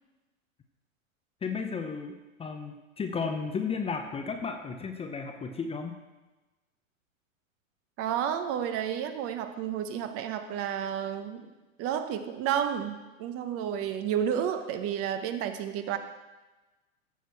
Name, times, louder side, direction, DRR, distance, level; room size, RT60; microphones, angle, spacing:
voice 1, 1.4-2.1 2.4-6.0, left 5 dB, 15° left, 5 dB, 0.7 m, -33 dB
voice 2, 8.0-11.5 11.8-16.0, right 9 dB, 35° right, 8 dB, 0.9 m, -31 dB
14.0 x 6.0 x 4.6 m, 1.1 s
hypercardioid pair, 105°, 41 cm